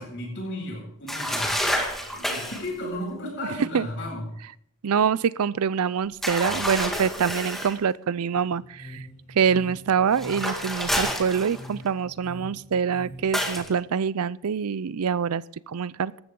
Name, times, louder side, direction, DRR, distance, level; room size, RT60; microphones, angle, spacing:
voice 1, 0.0-1.5 2.1-4.3, left 1 dB, 50° left, -8 dB, 7.2 m, -34 dB
sound 1, 1.1-2.7 6.2-7.8 10.1-11.9 13.3-13.7, equal, ahead, 2.0 m, -29 dB
voice 2, 4.8-9.0 9.3-16.2, right 7 dB, 80° right, 21 dB, 0.5 m, -25 dB
sound 2, 8.3-13.5, equal, 35° left, 3.3 m, -44 dB
18.5 x 14.0 x 3.8 m, 0.71 s
head